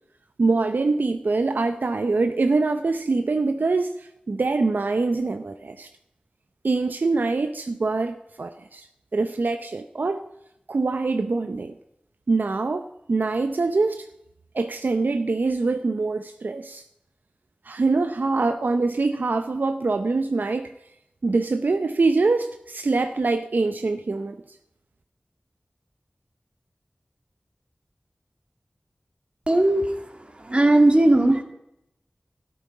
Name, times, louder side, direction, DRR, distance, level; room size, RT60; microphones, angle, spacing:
voice 1, 0.4-5.9 6.6-8.9 9.1-10.2 10.7-11.7 12.3-14.1 14.5-16.8 17.7-20.7 21.2-24.4, right 3 dB, 85° right, 8 dB, 0.6 m, -24 dB
voice 2, 29.5-30.1 30.4-31.4, right 1 dB, 40° right, 6 dB, 1.9 m, -18 dB
13.0 x 12.0 x 4.7 m, 0.81 s
wide cardioid pair, 45°, 3 cm